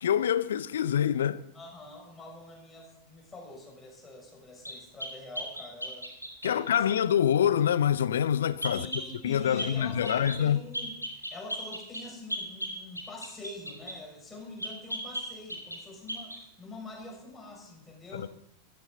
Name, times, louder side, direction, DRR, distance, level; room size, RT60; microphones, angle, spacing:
voice 1, 0.0-1.4 6.4-8.9 9.2-10.6 18.1-18.3, left 9 dB, 65° left, 0.6 m, -26 dB
voice 2, 1.5-6.1 6.4-6.8 8.7-10.9 11.3-18.3, left 2 dB, 15° left, 6.6 m, -45 dB
sound 1, 4.6-6.6 8.6-9.1 9.6-9.8 10.0-10.4 10.7-14.0 14.6-15.8 16.1-16.4, equal, 90° left, 2.7 m, -36 dB
16.0 x 14.5 x 4.0 m
figure-of-eight pair, 90°, 0 cm